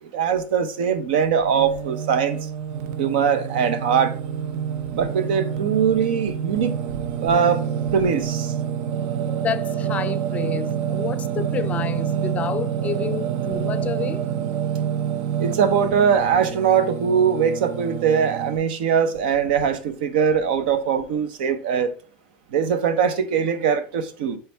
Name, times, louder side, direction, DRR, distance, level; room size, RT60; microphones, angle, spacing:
voice 1, 0.0-2.4 3.0-4.1 4.9-6.8 7.2-7.6 7.9-8.5 15.4-21.9 22.5-24.4, right 7 dB, 85° right, 0.8 m, -21 dB
Singing, 1.4-18.6, right 9 dB, 70° right, 0.6 m, -27 dB
voice 2, 9.4-14.3, left 8 dB, 25° left, 0.5 m, -29 dB
8.8 x 3.3 x 3.4 m
supercardioid pair, 125°, 5 cm